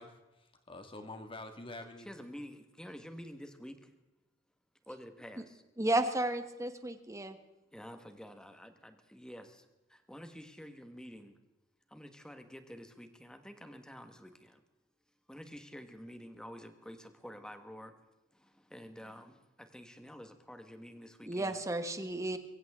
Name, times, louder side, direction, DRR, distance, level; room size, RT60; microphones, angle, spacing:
voice 1, 0.0-2.1, left 2 dB, 25° left, 6 dB, 1.9 m, -47 dB
voice 2, 2.0-3.9 4.9-5.6 7.7-11.4 11.9-14.6 15.3-17.9 18.3-21.6, equal, 5° left, 7 dB, 1.4 m, -49 dB
voice 3, 5.8-7.4 21.3-22.4, right 2 dB, 15° right, 8 dB, 1.3 m, -33 dB
23.5 x 15.5 x 3.7 m, 1.1 s
head